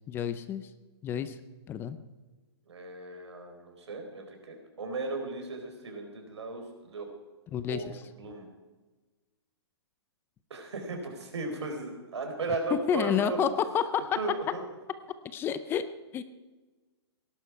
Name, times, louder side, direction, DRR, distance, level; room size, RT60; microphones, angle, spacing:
voice 1, 0.1-0.7 1.0-1.4 1.7-2.0 7.5-7.8 12.9-13.5 13.7-14.1 15.3-15.8 16.1-16.2, left 8 dB, 15° left, 13 dB, 0.6 m, -29 dB
voice 2, 2.7-7.1 7.7-7.9 8.1-8.5 10.5-13.4 14.2-14.6, right 2 dB, 85° right, 4 dB, 4.2 m, -36 dB
18.5 x 11.5 x 4.7 m, 1.3 s
hypercardioid pair, 150°, 14 cm